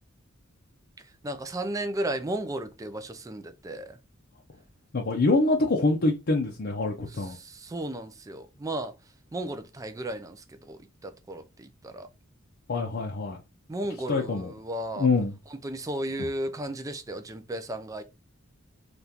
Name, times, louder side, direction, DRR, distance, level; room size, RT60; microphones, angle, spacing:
voice 1, 1.2-4.0 7.3-8.9 9.3-12.1 13.7-15.1 15.6-18.0, right 1 dB, 15° right, 0.4 m, -34 dB
voice 2, 4.9-7.4 12.7-13.4 14.1-14.5 15.0-15.4 16.2-16.3, left 3 dB, 50° left, 0.6 m, -25 dB
3.5 x 2.4 x 2.7 m
head